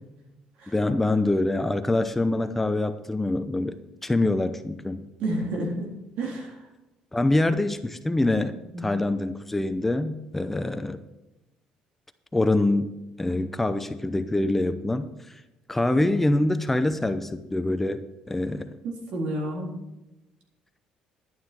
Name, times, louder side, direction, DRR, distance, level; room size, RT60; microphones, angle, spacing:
voice 1, 0.7-5.1 7.1-11.0 12.3-12.9 13.2-15.4 15.7-18.8, left 2 dB, 10° left, 9 dB, 0.7 m, -25 dB
voice 2, 5.2-5.9 6.2-6.7 8.7-8.9 18.8-19.7, right 1 dB, 70° right, 0 dB, 3.7 m, -30 dB
11.5 x 9.4 x 4.5 m, 0.99 s
cardioid pair, 115°, 2 cm